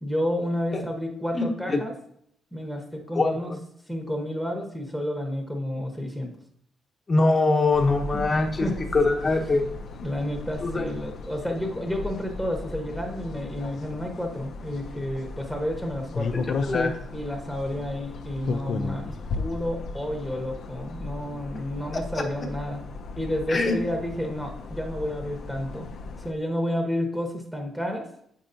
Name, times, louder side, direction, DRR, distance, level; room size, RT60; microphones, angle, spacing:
voice 1, 0.0-1.9 2.5-3.5 3.9-6.3 8.1-8.3 8.6-8.8 10.0-16.5 17.1-22.8 23.2-25.9 26.2-28.1, left 1 dB, ahead, 2 dB, 1.0 m, -30 dB
voice 2, 1.3-1.8 3.1-3.6 7.1-9.7 10.6-10.9 16.3-17.0 22.1-22.2 23.5-23.8, left 3 dB, 35° left, 2 dB, 1.0 m, -23 dB
sound 1, 7.7-26.3, left 4 dB, 60° left, 0.5 m, -36 dB
7.4 x 5.4 x 2.6 m, 0.71 s
cardioid pair, 90°, 0 cm